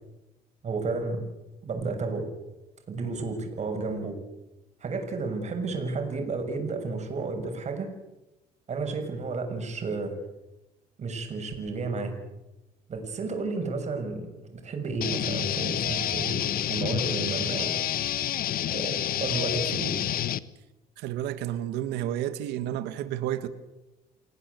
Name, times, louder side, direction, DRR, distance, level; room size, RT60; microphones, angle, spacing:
voice 1, 0.6-1.2 1.6-2.2 2.9-4.2 4.8-7.9 8.7-10.2 11.0-12.1 12.9-16.4 16.7-17.7 18.7-20.0, right 3 dB, 40° right, 5 dB, 6.9 m, -32 dB
sound 1, 15.0-20.4, left 11 dB, 60° left, 1.1 m, -29 dB
voice 2, 21.0-23.5, right 12 dB, 90° right, 11 dB, 1.8 m, -31 dB
29.0 x 17.0 x 8.4 m, 0.98 s
cardioid pair, 110°, 17 cm